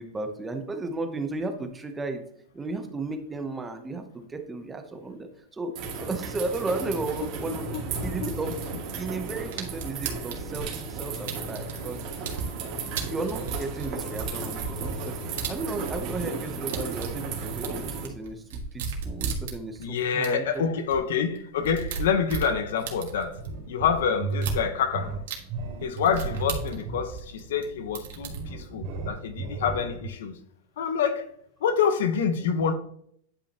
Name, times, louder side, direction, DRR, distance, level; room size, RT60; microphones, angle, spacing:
voice 1, 0.0-2.2 2.5-7.8 8.0-8.5 9.0-12.0 13.0-20.7, right 3 dB, 10° right, 0.8 m, -34 dB
sound 1, 5.7-18.1, right 4 dB, 40° right, 2.2 m, -34 dB
voice 2, 7.2-7.8 8.2-8.3 19.8-23.4 23.7-25.2 25.8-30.4 30.8-31.3 31.6-32.7, left 6 dB, 80° left, 1.0 m, -27 dB
sound 2, 9.5-12.5 12.9-16.2 16.4-19.8 20.2-20.3 20.5-20.6 20.9-21.0 21.3-23.5 24.3-24.6 25.3-25.4 26.0-27.6 27.9-28.4, right 6 dB, 75° right, 1.8 m, -35 dB
sound 3, 22.1-30.1, right 3 dB, 55° right, 3.0 m, -36 dB
9.8 x 5.6 x 2.9 m
supercardioid pair, 160°, 0 cm